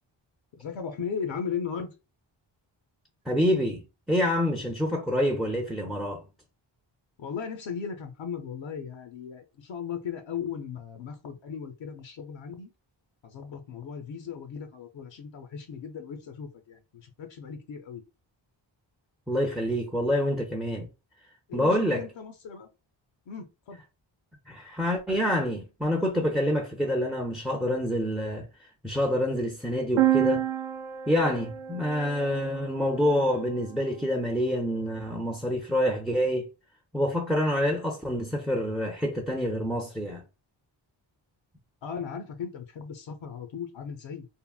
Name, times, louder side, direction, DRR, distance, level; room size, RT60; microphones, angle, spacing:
voice 1, 0.5-1.9 7.2-12.7 13.2-18.0 21.5-22.7 23.3-23.8 41.8-44.3, left 6 dB, 70° left, 0.6 m, -37 dB
voice 2, 3.3-3.8 4.1-6.2 19.3-20.9 21.5-22.1 24.5-28.5 28.8-30.4 31.1-36.5 36.9-40.2, equal, ahead, 0.4 m, -27 dB
sound 1, 30.0-33.7, right 13 dB, 70° right, 0.5 m, -29 dB
3.5 x 2.0 x 2.3 m
wide cardioid pair, 95°, 46 cm